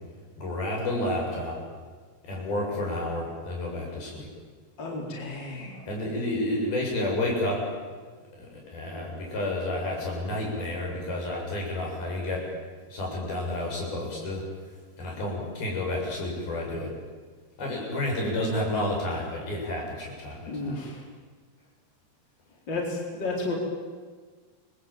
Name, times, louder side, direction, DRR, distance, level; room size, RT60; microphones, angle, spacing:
voice 1, 0.4-1.6 2.2-4.3 5.9-7.6 8.4-12.5 12.9-14.4 15.0-16.9 17.6-20.8, left 1 dB, 65° left, -1 dB, 9.1 m, -30 dB
voice 2, 4.8-5.9 20.5-21.0 22.7-23.5, left 2 dB, 25° left, -1 dB, 4.8 m, -32 dB
29.0 x 21.5 x 9.0 m, 1.5 s
omnidirectional pair, 4.6 m